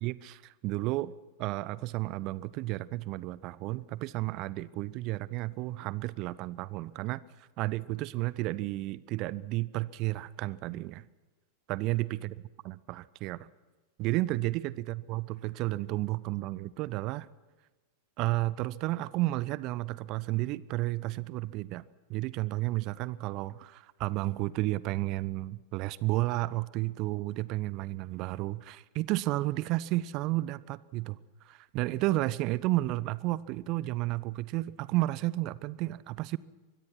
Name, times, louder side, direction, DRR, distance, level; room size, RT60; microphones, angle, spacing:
voice 1, 0.0-1.1 1.4-7.2 7.6-11.1 11.7-12.4 12.6-13.4 14.0-17.3 18.2-21.8 22.1-31.2 31.4-36.4, right 18 dB, 40° right, 21 dB, 0.6 m, -32 dB
24.5 x 22.0 x 6.0 m, 1.3 s
figure-of-eight pair, 90°, 0 cm